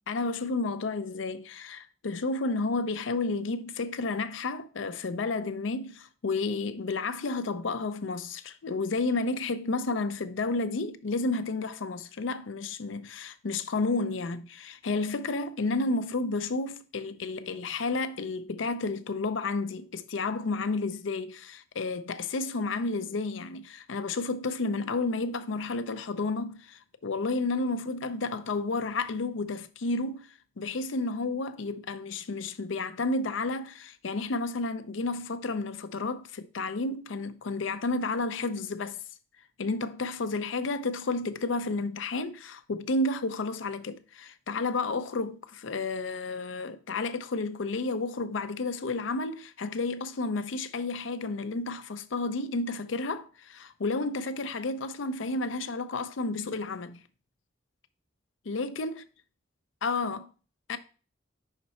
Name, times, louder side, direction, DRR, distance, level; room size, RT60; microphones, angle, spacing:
voice 1, 0.1-30.3 30.6-39.0 39.6-57.0 58.5-59.0 59.8-60.3 60.7-60.8, left 3 dB, 85° left, 0.5 m, -31 dB
5.8 x 4.2 x 4.1 m
head